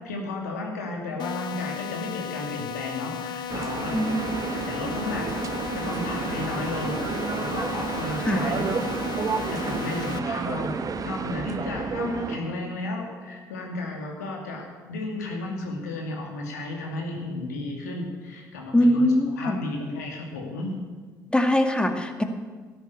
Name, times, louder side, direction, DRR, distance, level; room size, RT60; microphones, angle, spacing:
voice 1, 0.0-3.9 4.6-5.4 5.7-8.6 9.5-10.8 11.0-19.1 19.4-20.7, left 2 dB, 90° left, 1 dB, 2.5 m, -33 dB
sound 1, 1.2-10.2, left 9 dB, 60° left, 0.9 m, -35 dB
sound 2, 3.5-12.4, right 5 dB, 45° right, 1.2 m, -30 dB
voice 2, 18.7-19.6 21.3-22.2, left 1 dB, 10° left, 5 dB, 2.1 m, -22 dB
13.5 x 11.0 x 8.3 m, 1.4 s
hypercardioid pair, 55°, 9 cm